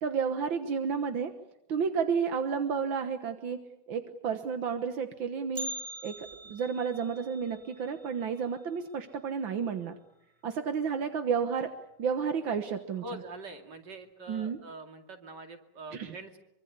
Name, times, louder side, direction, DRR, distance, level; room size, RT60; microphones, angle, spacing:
voice 1, 0.0-1.3 1.7-3.6 3.9-5.7 6.0-9.9 10.4-11.7 12.0-13.0 14.3-14.6 15.9-16.1, right 6 dB, 55° right, 7 dB, 1.5 m, -31 dB
Bell, 5.5-9.6 9.9-10.0 10.5-10.6 11.4-11.5 12.3-12.5 12.9-13.0, equal, 10° right, 1.7 m, -44 dB
voice 2, 13.0-16.4, right 2 dB, 35° right, 5 dB, 2.7 m, -44 dB
25.0 x 24.5 x 8.3 m, 0.80 s
omnidirectional pair, 3.8 m